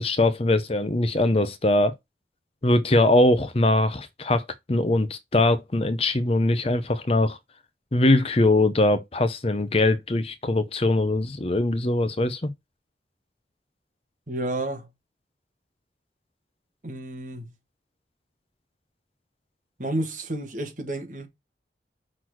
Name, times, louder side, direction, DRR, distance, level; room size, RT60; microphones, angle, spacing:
voice 1, 0.0-1.9 2.6-4.4 4.7-7.4 7.9-12.5, left 2 dB, 35° left, 0.7 m, -22 dB
voice 2, 14.3-14.9 16.8-17.5 19.8-21.3, right 1 dB, 45° right, 1.9 m, -31 dB
6.2 x 4.0 x 6.2 m
head